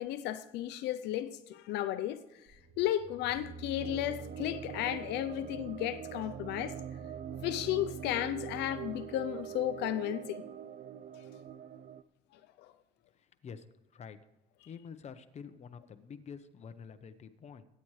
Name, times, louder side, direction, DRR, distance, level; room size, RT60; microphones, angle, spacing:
voice 1, 0.0-2.2 2.8-6.8 7.4-10.4 12.6-12.7, left 12 dB, 85° left, 0.6 m, -34 dB
sound 1, 2.5-9.9, right 3 dB, 90° right, 5.4 m, -50 dB
sound 2, 3.8-12.0, right 9 dB, 55° right, 0.5 m, -44 dB
voice 2, 14.7-17.6, left 6 dB, 40° left, 0.9 m, -47 dB
22.5 x 8.9 x 3.2 m
cardioid pair, 110°, 17 cm